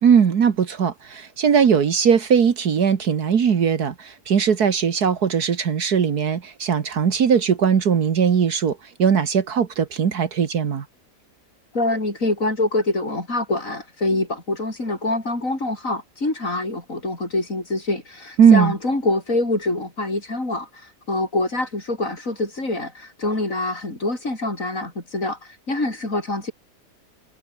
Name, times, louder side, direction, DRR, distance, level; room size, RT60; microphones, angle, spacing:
voice 1, 0.0-10.8 18.4-18.7, right 7 dB, 65° right, 2.0 m, -19 dB
voice 2, 11.7-26.5, left 2 dB, 50° left, 6.3 m, -25 dB
omnidirectional pair, 1.8 m